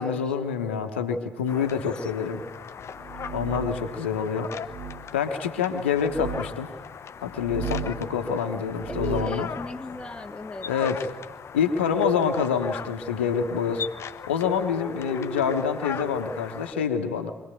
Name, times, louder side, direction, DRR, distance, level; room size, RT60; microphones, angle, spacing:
voice 1, 0.0-2.4 3.3-4.5 5.1-6.7 7.2-9.5 10.7-11.1 11.5-13.9 14.3-17.3, left 6 dB, 85° left, 6 dB, 1.2 m, -26 dB
sound 1, 1.5-16.7, left 7 dB, 50° left, 0.8 m, -39 dB
voice 2, 1.6-2.1 8.9-10.7 14.8-15.5, left 2 dB, 15° left, 4 dB, 1.9 m, -36 dB
sound 2, 2.9-3.9 4.6-5.0 6.0-6.4 7.3-8.0 8.7-9.4, right 6 dB, 55° right, 2.1 m, -34 dB
25.0 x 18.5 x 9.1 m, 1.3 s
hypercardioid pair, 45°, 6 cm